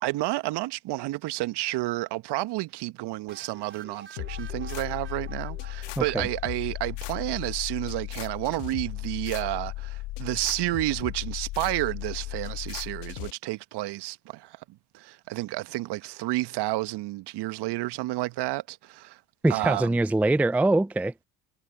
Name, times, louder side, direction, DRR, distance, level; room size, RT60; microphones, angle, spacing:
voice 1, 0.0-19.2 19.5-20.0, right 18 dB, 55° right, 1.4 m, -31 dB
sound 1, 3.3-7.1, right 5 dB, 25° right, 4.4 m, -48 dB
sound 2, 4.2-13.3, left 18 dB, 60° left, 2.6 m, -36 dB
voice 2, 6.0-6.3 19.4-21.1, right 2 dB, 5° right, 0.5 m, -23 dB
figure-of-eight pair, 60°, 48 cm